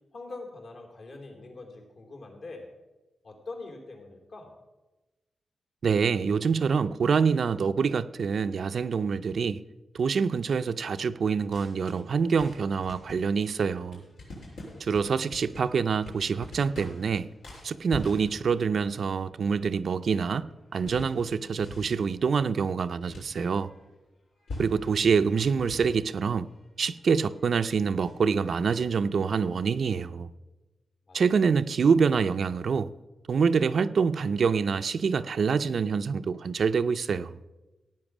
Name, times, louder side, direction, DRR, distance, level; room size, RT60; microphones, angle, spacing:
voice 1, 0.1-2.7 3.2-4.5 15.0-15.1 31.1-31.2, left 3 dB, 60° left, 3.3 m, -43 dB
voice 2, 5.8-9.6 9.9-14.0 14.8-17.3 17.6-23.7 24.6-26.5 26.8-30.3 31.1-32.9 33.3-37.4, right 5 dB, 55° right, 0.4 m, -26 dB
sound 1, 11.5-24.0 24.3-30.0, left 2 dB, 85° left, 6.4 m, -46 dB
16.5 x 9.2 x 6.1 m
wide cardioid pair, 175°, 0 cm